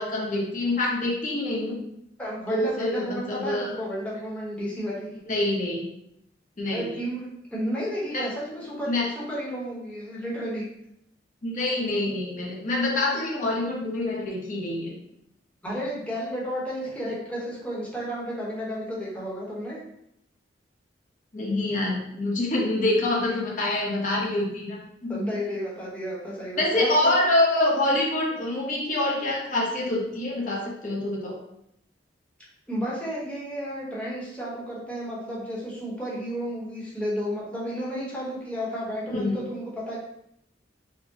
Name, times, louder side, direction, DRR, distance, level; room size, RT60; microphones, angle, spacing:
voice 1, 0.0-1.8 2.5-3.7 5.3-5.8 6.6-7.0 8.1-8.2 8.9-9.0 11.4-14.9 21.3-25.2 26.6-31.4 39.1-39.5, left 1 dB, 45° left, -3 dB, 0.9 m, -26 dB
voice 2, 2.2-5.1 6.7-10.7 15.6-19.8 25.1-27.1 32.7-40.0, equal, 5° left, -6 dB, 1.0 m, -32 dB
4.4 x 2.1 x 2.9 m, 0.77 s
head